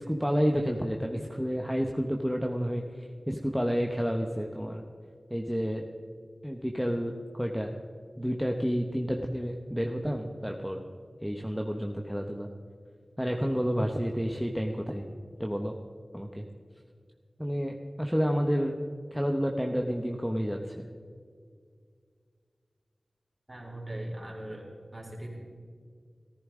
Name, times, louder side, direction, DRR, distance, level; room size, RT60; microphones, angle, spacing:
voice 1, 0.0-4.8 5.3-5.8 6.4-7.1 7.4-7.7 8.2-10.8 11.2-12.5 13.2-15.1 15.4-15.7 16.1-16.5 17.4-18.7 19.1-20.9, equal, ahead, 2 dB, 0.9 m, -30 dB
voice 2, 23.5-25.4, right 1 dB, 25° right, -2 dB, 3.8 m, -40 dB
15.0 x 14.0 x 3.7 m, 2.1 s
wide cardioid pair, 45°, 0 cm